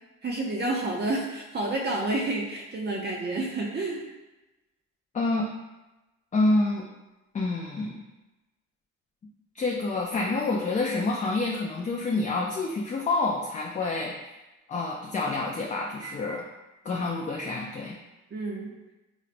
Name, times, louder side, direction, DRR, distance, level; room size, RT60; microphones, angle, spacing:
voice 1, 0.2-4.0 18.3-18.7, right 2 dB, 35° right, -2 dB, 0.5 m, -29 dB
voice 2, 5.1-5.5 6.3-6.9 7.3-8.0 9.6-14.4 14.7-16.4 16.8-17.9, left 2 dB, 25° left, -1 dB, 0.3 m, -28 dB
3.9 x 2.0 x 2.5 m, 1.0 s
cardioid pair, 90°, 30 cm